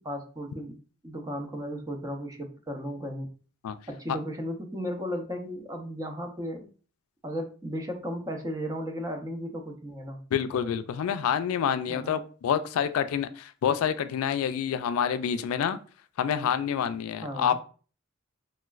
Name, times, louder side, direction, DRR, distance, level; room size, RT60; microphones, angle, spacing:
voice 1, 0.0-0.7 1.0-3.3 3.9-6.7 7.2-10.2 11.9-12.1 17.2-17.6, equal, 15° right, 0.5 m, -35 dB
voice 2, 10.3-15.8 16.2-17.6, left 8 dB, 80° left, 0.3 m, -27 dB
3.1 x 3.0 x 2.3 m
head